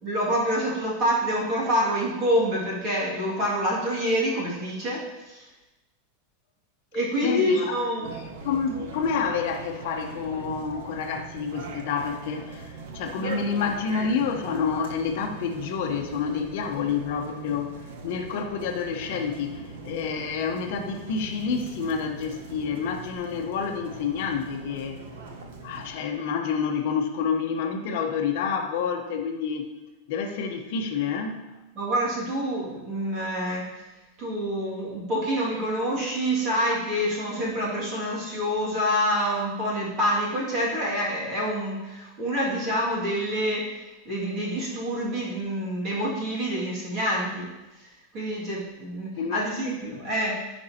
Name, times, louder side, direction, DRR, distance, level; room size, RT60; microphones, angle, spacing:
voice 1, 0.0-5.4 6.9-8.1 31.7-33.7 34.2-43.7 44.1-47.5 48.1-50.4, equal, 25° right, -5 dB, 2.2 m, -27 dB
voice 2, 7.2-7.8 8.1-17.8 18.0-25.0 25.6-29.7 30.1-31.5 49.2-49.4, left 6 dB, 45° left, 2 dB, 1.0 m, -28 dB
sound 1, 8.0-25.9, right 4 dB, 65° right, 1.2 m, -41 dB
15.0 x 5.3 x 2.9 m, 1.1 s
supercardioid pair, 180°, 0 cm